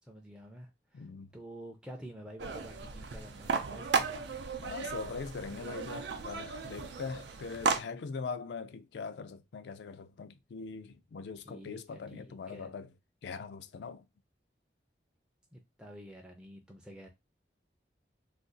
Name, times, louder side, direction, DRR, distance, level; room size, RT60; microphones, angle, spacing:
voice 1, 0.1-1.1 1.3-4.3 11.4-12.7 15.5-17.1, equal, 5° right, 0.4 m, -49 dB
voice 2, 0.9-1.3 4.6-12.9 13.2-14.0, left 5 dB, 80° left, 0.4 m, -42 dB
sound 1, 2.4-7.8, right 5 dB, 85° right, 0.5 m, -35 dB
2.5 x 2.3 x 3.7 m
head